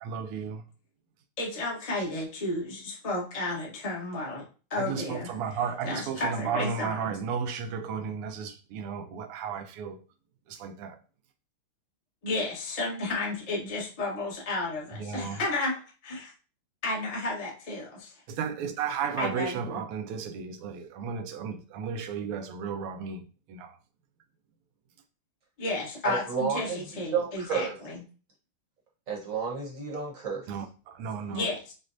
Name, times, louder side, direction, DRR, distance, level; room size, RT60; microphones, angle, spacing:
voice 1, 0.0-0.7 4.7-10.0 10.5-11.0 14.9-15.4 18.3-23.8 30.5-31.5, right 6 dB, 90° right, 1.6 m, -34 dB
voice 2, 1.4-4.4 4.7-5.3 5.8-7.0 12.2-16.3 16.8-18.1 19.2-19.8 25.6-28.0 31.3-31.7, left 2 dB, 25° left, 0.9 m, -32 dB
voice 3, 26.0-26.8 27.1-27.8 29.1-30.4, right 6 dB, 45° right, 1.2 m, -31 dB
6.2 x 2.3 x 2.6 m
omnidirectional pair, 2.4 m